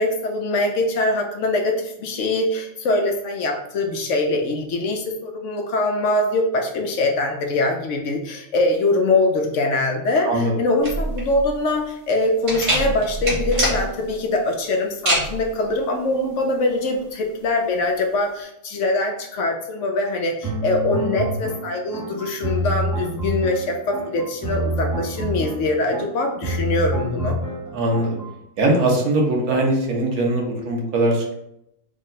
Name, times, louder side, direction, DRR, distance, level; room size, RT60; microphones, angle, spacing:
voice 1, 0.0-27.4, left 2 dB, 70° left, 3 dB, 0.8 m, -23 dB
sound 1, 10.8-18.4, right 1 dB, 55° right, 1.7 m, -26 dB
sound 2, 20.4-28.3, right 1 dB, 20° right, 0.6 m, -27 dB
voice 2, 27.7-28.1 28.6-31.3, right 1 dB, 90° right, 0 dB, 1.3 m, -20 dB
3.6 x 2.1 x 3.8 m, 0.79 s
omnidirectional pair, 1.5 m